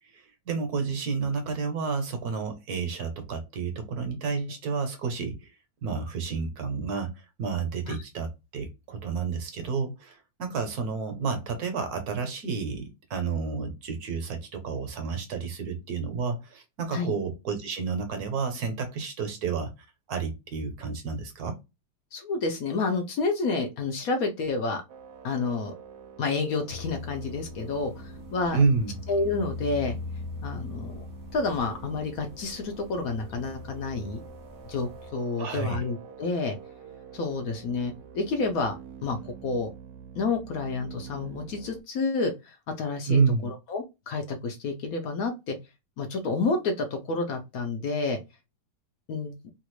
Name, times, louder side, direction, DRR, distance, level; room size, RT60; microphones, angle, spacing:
voice 1, 0.1-5.5 5.8-19.7 20.1-21.6 28.5-29.0 35.4-35.8 43.1-43.5, right 5 dB, 65° right, 1.2 m, -30 dB
voice 2, 22.1-24.8 25.2-25.7 26.2-28.6 29.1-30.0 30.4-31.1 31.3-34.2 34.7-36.6 37.1-38.8 39.0-39.7 40.1-45.6 46.0-48.2 49.1-49.3, left 3 dB, 65° left, 1.0 m, -29 dB
sound 1, 24.9-41.8, right 7 dB, 85° right, 1.2 m, -47 dB
sound 2, 26.7-35.1, left 3 dB, 30° left, 0.3 m, -41 dB
3.2 x 2.4 x 3.0 m
omnidirectional pair, 1.8 m